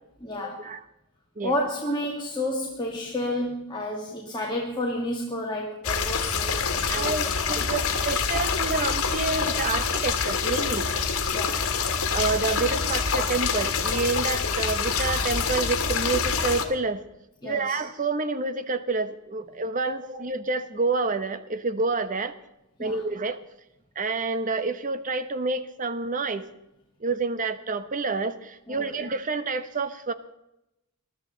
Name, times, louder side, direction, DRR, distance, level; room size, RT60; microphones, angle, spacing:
voice 1, 0.2-0.6 1.4-7.1 11.3-11.6 17.4-17.8 22.8-23.0 28.7-28.9, left 1 dB, 20° left, -2 dB, 1.9 m, -30 dB
sound 1, 5.8-16.7, left 5 dB, 75° left, 1.7 m, -26 dB
voice 2, 6.9-10.9 12.1-17.0 17.4-22.3 22.8-23.4 24.0-26.5 27.0-30.1, right 3 dB, 40° right, 11 dB, 0.9 m, -28 dB
21.0 x 13.0 x 3.9 m, 0.87 s
head